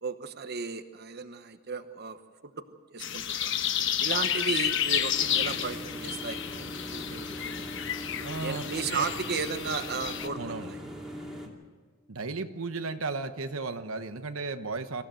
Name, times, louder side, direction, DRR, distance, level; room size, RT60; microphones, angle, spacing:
voice 1, 0.0-2.2 2.4-2.5 2.9-3.5 4.0-7.7 8.2-10.8, right 5 dB, 50° right, 9 dB, 1.1 m, -35 dB
sound 1, 3.0-10.3, left 9 dB, 60° left, 1.1 m, -31 dB
sound 2, 5.1-11.5, equal, 5° right, 2.7 m, -41 dB
voice 2, 8.2-8.6 8.9-9.0 10.4-10.7 12.1-15.0, right 3 dB, 80° right, 8 dB, 1.0 m, -34 dB
25.5 x 15.0 x 7.7 m, 1.5 s
head